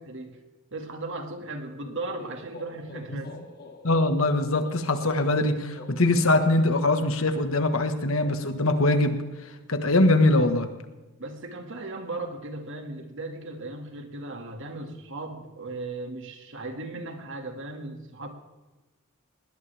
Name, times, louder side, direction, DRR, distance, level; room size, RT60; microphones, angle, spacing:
voice 1, 0.1-0.4 0.7-3.3 11.2-18.3, right 2 dB, 60° right, 4 dB, 2.2 m, -37 dB
sound 1, 1.8-9.5, left 1 dB, 45° left, 2.4 m, -48 dB
voice 2, 3.8-9.2 9.7-10.7, left 2 dB, 65° left, 7 dB, 1.6 m, -22 dB
20.5 x 18.5 x 3.5 m, 1.2 s
head